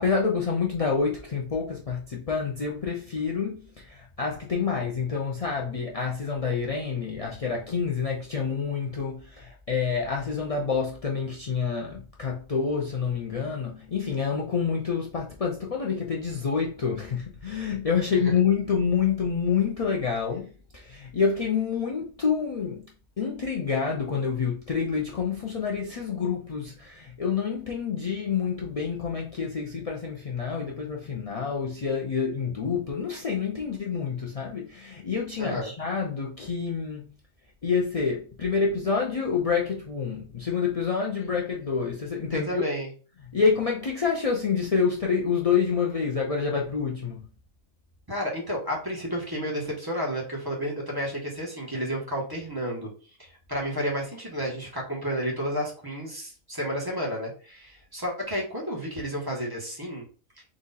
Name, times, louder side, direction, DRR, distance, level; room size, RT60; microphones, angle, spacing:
voice 1, 0.0-22.8 23.2-37.1 37.6-42.6 43.3-47.2, left 6 dB, 60° left, 0.3 m, -27 dB
voice 2, 35.4-35.7 42.3-42.9 48.1-52.9 53.2-60.0, equal, 15° right, 1.2 m, -31 dB
4.1 x 2.5 x 3.9 m
omnidirectional pair, 1.4 m